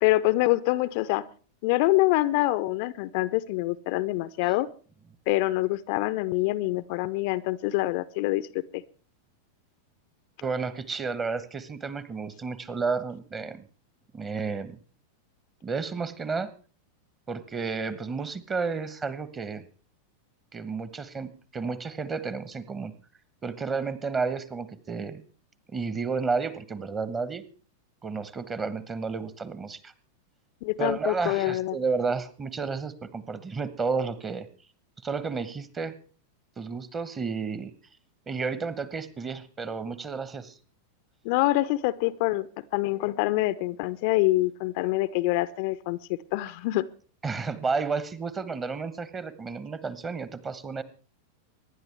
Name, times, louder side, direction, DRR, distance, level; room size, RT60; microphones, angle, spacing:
voice 1, 0.0-1.2 1.6-4.7 5.3-8.8 30.6-31.8 41.2-42.5 42.7-46.8, left 18 dB, 45° left, 15 dB, 0.6 m, -25 dB
voice 2, 10.4-13.6 14.1-14.8 15.6-16.5 17.3-19.7 20.5-22.9 23.4-25.2 25.7-27.4 28.0-29.9 30.8-34.5 35.0-35.9 36.6-37.7 38.3-40.6 47.2-50.8, right 4 dB, 20° right, 15 dB, 1.3 m, -31 dB
24.5 x 10.5 x 3.5 m, 0.39 s
figure-of-eight pair, 90°, 0 cm